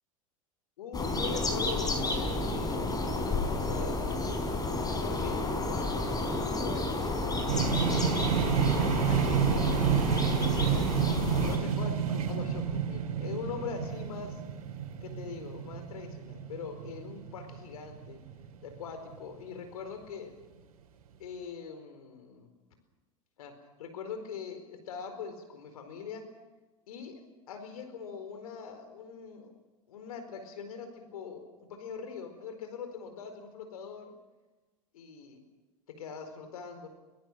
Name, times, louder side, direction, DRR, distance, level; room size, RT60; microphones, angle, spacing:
voice 1, 0.8-2.9 3.2-4.4 4.9-6.2 6.6-7.1 7.6-11.0 11.5-14.4 15.0-18.2 18.6-20.3 21.2-22.5 23.4-23.5 23.8-26.2 26.9-27.2 27.5-29.5 29.9-34.1 34.9-35.4 36.0-36.9, left 6 dB, 80° left, 7 dB, 4.5 m, -42 dB
sound 1, 0.9-11.6, left 2 dB, 20° left, 4.6 m, -31 dB
sound 2, 7.5-19.3, right 8 dB, 80° right, 3.5 m, -30 dB
23.0 x 18.5 x 7.5 m, 1.2 s
hypercardioid pair, 95°, 19 cm